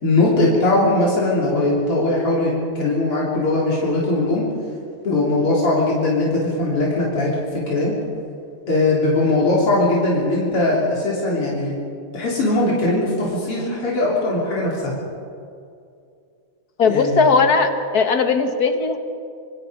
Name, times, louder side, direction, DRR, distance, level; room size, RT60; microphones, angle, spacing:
voice 1, 0.0-4.4 5.0-7.9 8.7-11.8 12.1-14.9 16.8-17.3, left 2 dB, 90° left, -5 dB, 4.5 m, -20 dB
voice 2, 16.8-19.0, left 4 dB, 45° left, 7 dB, 1.9 m, -18 dB
26.5 x 25.5 x 5.3 m, 2.4 s
omnidirectional pair, 2.4 m